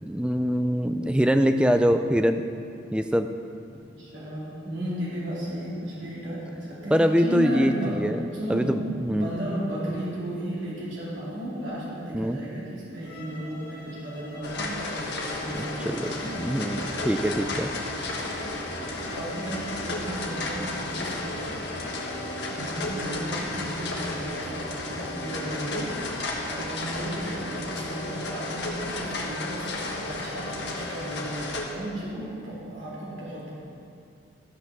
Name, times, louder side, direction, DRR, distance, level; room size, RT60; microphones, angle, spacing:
voice 1, 0.0-2.4 2.9-3.3 6.9-8.2 8.5-9.3 12.1-12.4 15.5-17.7, equal, 5° right, 8 dB, 0.3 m, -24 dB
voice 2, 3.7-8.0 8.3-8.7 9.1-16.6 18.9-21.6 22.5-33.5, equal, 75° right, -7 dB, 2.5 m, -34 dB
Bowed string instrument, 12.9-23.0, left 2 dB, 25° left, 2.6 m, -47 dB
sound 1, 14.4-31.6, left 2 dB, 60° left, 1.4 m, -33 dB
sound 2, 16.1-27.8, right 2 dB, 25° right, 1.7 m, -44 dB
13.0 x 5.9 x 6.1 m, 2.5 s
head